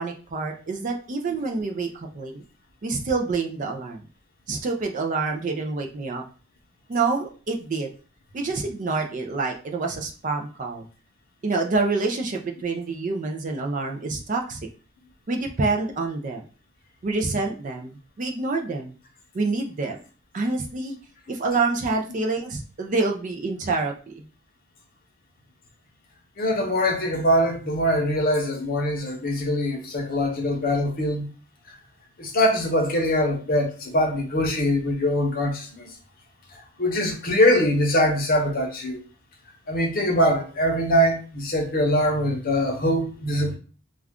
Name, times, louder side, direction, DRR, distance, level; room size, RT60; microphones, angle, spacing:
voice 1, 0.0-1.9 2.1-2.4 2.8-4.0 4.5-6.2 6.9-7.9 8.3-10.8 11.4-14.6 15.3-16.4 17.0-18.9 19.3-20.0 20.3-21.0 21.3-24.2, right 3 dB, 40° right, 0.4 m, -27 dB
voice 2, 26.4-31.2 32.2-35.9 36.8-39.0 39.7-43.6, equal, 45° left, 0.8 m, -23 dB
2.3 x 2.3 x 3.5 m
head